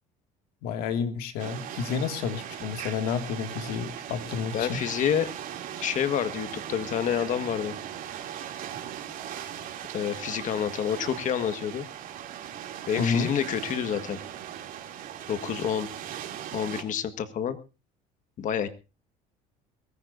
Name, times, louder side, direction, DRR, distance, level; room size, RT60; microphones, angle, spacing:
voice 1, 0.6-4.8 13.0-13.3, left 6 dB, 80° left, 7 dB, 2.2 m, -30 dB
sound 1, 1.4-16.8, right 10 dB, 60° right, 2.9 m, -39 dB
voice 2, 4.5-5.3 5.8-7.7 9.9-11.9 12.9-14.2 15.3-15.9 16.5-17.6 18.4-18.7, left 9 dB, 50° left, 10 dB, 1.6 m, -28 dB
22.5 x 15.0 x 2.7 m, 0.29 s
supercardioid pair, 100°, 16 cm